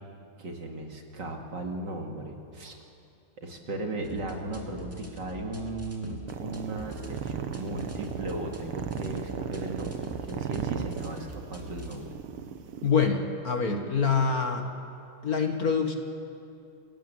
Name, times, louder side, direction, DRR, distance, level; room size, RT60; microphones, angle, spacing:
voice 1, 0.4-2.8 3.4-12.1, right 2 dB, 55° right, 2 dB, 3.0 m, -36 dB
sound 1, 4.0-12.0, equal, 5° right, 2.5 m, -44 dB
sound 2, 6.3-12.9, right 8 dB, 90° right, 2.0 m, -36 dB
voice 2, 12.8-14.6 15.2-15.9, left 5 dB, 45° left, 4 dB, 2.0 m, -25 dB
29.0 x 19.0 x 7.9 m, 2.6 s
omnidirectional pair, 2.3 m